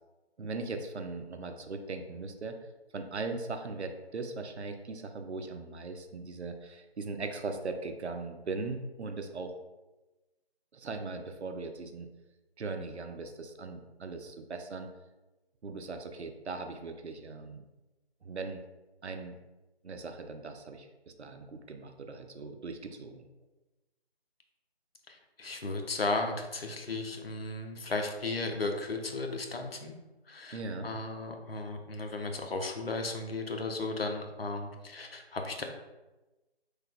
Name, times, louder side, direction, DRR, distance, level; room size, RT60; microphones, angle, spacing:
voice 1, 0.4-2.6 2.9-9.5 10.7-12.1 12.6-14.9 15.6-17.6 18.2-18.6 19.0-19.3 19.8-23.2 30.5-30.9, right 3 dB, 80° right, 6 dB, 0.6 m, -39 dB
voice 2, 25.1-29.9 30.3-35.6, left 3 dB, 60° left, 3 dB, 0.6 m, -35 dB
3.2 x 2.2 x 3.4 m, 1.1 s
figure-of-eight pair, 160°, 33 cm